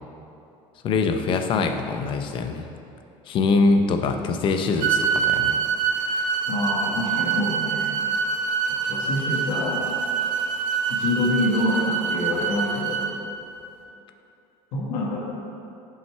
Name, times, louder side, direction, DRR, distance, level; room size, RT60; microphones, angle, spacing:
voice 1, 0.8-2.6 3.3-5.6 5.8-6.3, left 3 dB, 40° left, 6 dB, 0.5 m, -23 dB
sound 1, 4.8-13.1, right 6 dB, 65° right, 0.9 m, -25 dB
voice 2, 6.5-7.9 8.8-9.8 10.9-13.0 14.7-15.2, left 2 dB, 70° left, -4 dB, 1.5 m, -26 dB
6.2 x 5.7 x 4.6 m, 2.7 s
cardioid pair, 140°, 13 cm